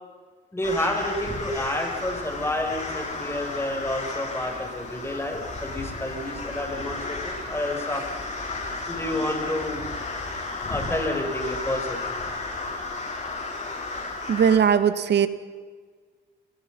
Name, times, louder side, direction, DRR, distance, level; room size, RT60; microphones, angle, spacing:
voice 1, 0.5-8.0 8.9-9.8 10.7-12.0, left 1 dB, 10° left, 2 dB, 7.4 m, -29 dB
sound 1, 0.6-14.6, left 3 dB, 35° left, 7.6 m, -33 dB
voice 2, 14.3-15.3, right 7 dB, 60° right, 11 dB, 2.1 m, -19 dB
30.0 x 22.0 x 5.7 m, 1.5 s
cardioid pair, 90°, 20 cm